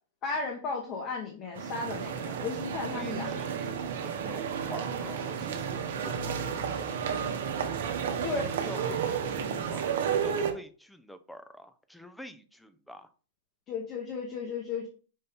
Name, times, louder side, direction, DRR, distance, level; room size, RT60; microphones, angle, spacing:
voice 1, 0.2-3.3 8.2-8.8 13.7-14.9, left 4 dB, 35° left, -1 dB, 1.1 m, -35 dB
sound 1, 1.6-10.5, right 7 dB, 65° right, 0.8 m, -32 dB
voice 2, 2.9-6.5 8.3-13.1, equal, ahead, 10 dB, 0.5 m, -47 dB
5.4 x 2.7 x 3.5 m, 0.38 s
hypercardioid pair, 115°, 0 cm